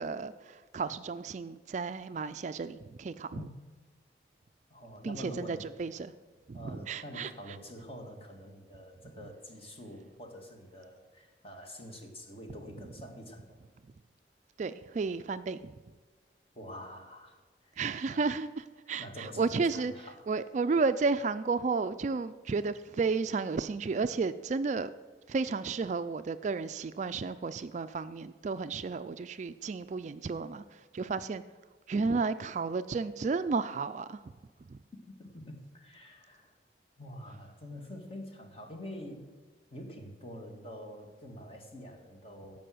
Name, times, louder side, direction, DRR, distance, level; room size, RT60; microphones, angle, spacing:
voice 1, 0.0-3.4 5.0-6.1 6.5-7.6 14.6-15.8 17.8-19.9 20.3-24.9 25.3-31.4 31.9-34.2 34.6-34.8, right 4 dB, 40° right, 12 dB, 0.3 m, -32 dB
voice 2, 3.3-3.6 4.7-5.7 6.5-13.6 16.5-17.4 17.6-17.8 18.0-18.2 19.0-20.2 35.1-36.6 37.0-39.3 39.7-42.6, left 1 dB, 35° left, 3 dB, 1.8 m, -46 dB
14.5 x 5.5 x 7.7 m, 1.4 s
head